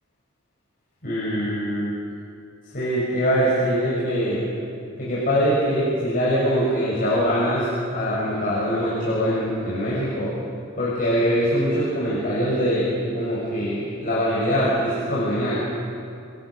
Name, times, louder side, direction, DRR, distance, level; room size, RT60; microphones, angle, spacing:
voice 1, 1.0-1.9 2.7-4.4 5.0-10.3 10.8-15.6, equal, 40° left, -8 dB, 7.0 m, -23 dB
28.5 x 23.0 x 6.6 m, 2.5 s
head